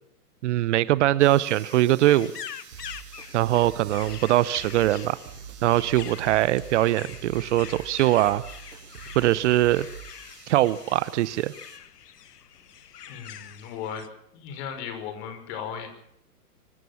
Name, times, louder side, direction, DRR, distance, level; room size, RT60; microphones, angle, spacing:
voice 1, 0.4-2.3 3.3-5.2 5.6-8.4 9.2-9.9 10.5-11.5, right 15 dB, 45° right, 19 dB, 0.8 m, -22 dB
sound 1, 1.2-11.8, right 11 dB, 30° right, 3.3 m, -51 dB
sound 2, 1.5-14.1, left 9 dB, 75° left, 1.4 m, -44 dB
sound 3, 2.7-10.1, right 7 dB, 70° right, 7.0 m, -44 dB
voice 2, 13.1-14.0 14.3-15.9, left 8 dB, 45° left, 8 dB, 5.7 m, -36 dB
25.0 x 15.5 x 7.1 m, 0.73 s
hypercardioid pair, 120°, 47 cm